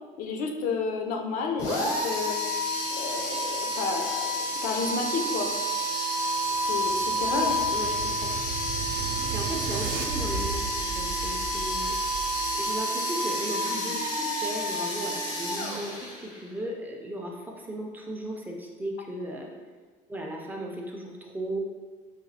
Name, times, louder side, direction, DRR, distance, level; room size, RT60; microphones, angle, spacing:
voice 1, 0.2-2.4 2.9-5.5 6.6-7.6, left 4 dB, 65° left, 3 dB, 0.4 m, -31 dB
sound 1, 1.6-16.5, equal, 85° left, 0.9 m, -29 dB
sound 2, 6.4-12.7, right 4 dB, 80° right, 0.4 m, -36 dB
voice 2, 7.3-8.4 9.3-12.0 12.5-19.5 20.1-21.6, right 1 dB, 10° right, 0 dB, 0.3 m, -36 dB
4.0 x 2.3 x 2.7 m, 1.4 s
cardioid pair, 145°, 15 cm